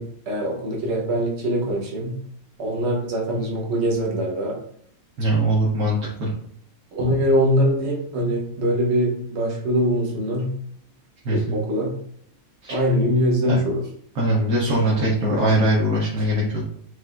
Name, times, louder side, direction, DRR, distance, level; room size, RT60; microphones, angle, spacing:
voice 1, 0.0-2.1 2.6-4.6 6.9-10.5 11.3-11.9 12.7-13.8, equal, 50° right, -1 dB, 1.2 m, -23 dB
voice 2, 5.2-6.3 11.2-11.6 12.6-12.8 13.5-13.6 14.1-16.7, right 1 dB, 85° right, -4 dB, 1.4 m, -21 dB
4.7 x 3.4 x 2.4 m, 0.64 s
omnidirectional pair, 1.5 m